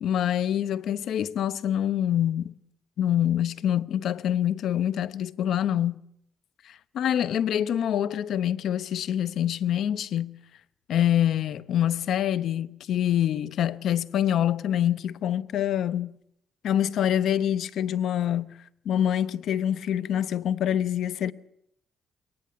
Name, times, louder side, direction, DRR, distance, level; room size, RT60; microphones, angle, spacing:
voice 1, 0.0-2.6 3.0-6.0 6.6-10.4 10.9-16.2 16.6-18.5 18.8-21.3, left 10 dB, 70° left, 0.8 m, -25 dB
22.5 x 19.5 x 6.8 m
cardioid pair, 90°, 0 cm